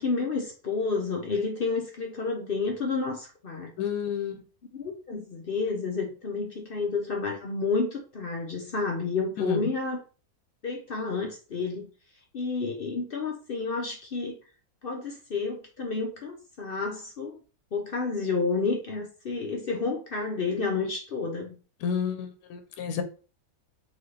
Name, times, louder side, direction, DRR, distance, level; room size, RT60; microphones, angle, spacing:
voice 1, 0.0-3.7 4.7-10.0 10.6-11.9 12.3-14.4 14.8-17.4 17.7-21.6, left 4 dB, 55° left, 1 dB, 0.6 m, -30 dB
voice 2, 3.8-4.4 9.4-9.7 21.8-23.0, left 7 dB, 80° left, 7 dB, 1.1 m, -30 dB
3.9 x 2.8 x 3.3 m, 0.36 s
omnidirectional pair, 1.6 m